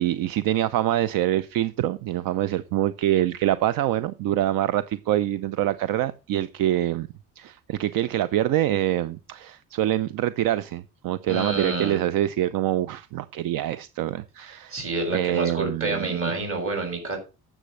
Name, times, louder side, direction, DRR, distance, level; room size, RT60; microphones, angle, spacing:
voice 1, 0.0-7.1 7.4-14.8 15.1-16.3, right 13 dB, 75° right, 16 dB, 0.7 m, -25 dB
voice 2, 11.3-12.0 14.7-17.2, right 3 dB, 40° right, 3 dB, 6.9 m, -28 dB
10.0 x 7.5 x 6.4 m, 0.32 s
cardioid pair, 115°, 34 cm